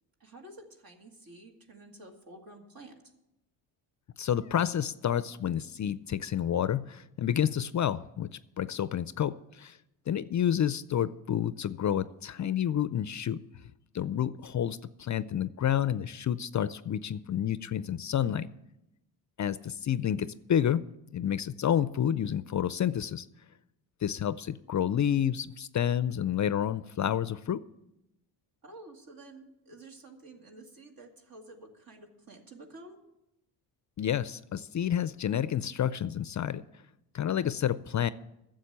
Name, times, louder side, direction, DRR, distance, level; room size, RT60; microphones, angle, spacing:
voice 1, 0.2-3.0 28.6-33.0, right 2 dB, 50° right, 2 dB, 2.3 m, -50 dB
voice 2, 4.2-8.3 8.6-9.8 10.1-13.4 13.9-18.5 19.4-20.8 21.1-23.3 24.0-27.6 34.0-36.6 37.1-38.1, left 10 dB, 40° left, 16 dB, 0.5 m, -29 dB
10.0 x 7.5 x 8.7 m, 0.89 s
supercardioid pair, 65°, 45 cm